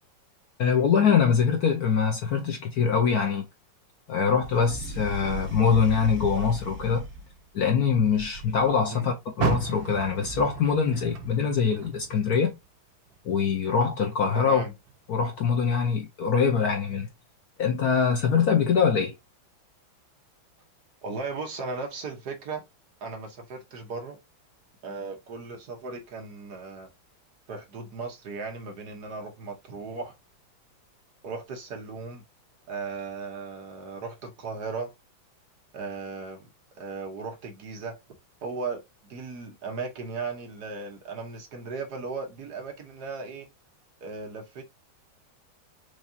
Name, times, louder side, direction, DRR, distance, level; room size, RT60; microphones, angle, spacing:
voice 1, 0.6-3.5 4.1-7.1 7.5-12.5 13.2-14.6 15.1-17.1 17.6-19.1, left 6 dB, 65° left, 1.0 m, -23 dB
sound 1, 4.4-7.4 7.9-8.9, right 2 dB, 35° right, 1.6 m, -38 dB
Car, 9.3-12.6 13.0-14.4 14.9-15.0 15.6-15.7, right 6 dB, 75° right, 1.5 m, -34 dB
voice 2, 14.3-14.7 21.0-22.6 23.0-24.2 24.8-26.9 27.5-30.1 31.2-32.2 32.7-34.9 35.7-36.5 36.7-38.0 38.4-43.5 44.0-44.6, right 4 dB, 60° right, 1.4 m, -36 dB
4.8 x 2.6 x 2.6 m
omnidirectional pair, 2.1 m